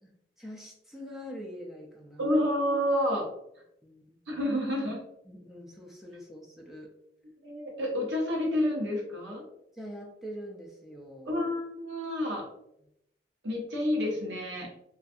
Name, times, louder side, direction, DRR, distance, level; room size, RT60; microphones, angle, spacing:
voice 1, 0.0-2.3 3.8-4.2 5.2-6.9 9.7-11.4, equal, ahead, -2 dB, 0.3 m, -44 dB
voice 2, 2.2-3.3 4.3-5.0 7.4-9.4 11.3-12.5 13.4-14.7, left 1 dB, 75° right, 0 dB, 0.7 m, -29 dB
2.5 x 2.3 x 2.4 m, 0.80 s
head